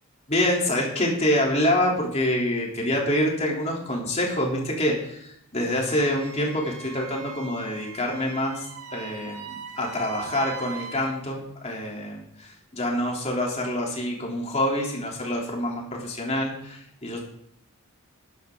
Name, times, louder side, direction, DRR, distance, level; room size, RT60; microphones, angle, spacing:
voice 1, 0.3-8.7 8.9-17.2, left 1 dB, 30° left, -2 dB, 3.5 m, -26 dB
Wind instrument woodwind instrument, 5.9-11.2, right 6 dB, 85° right, 2.0 m, -41 dB
14.0 x 11.0 x 3.9 m, 0.76 s
head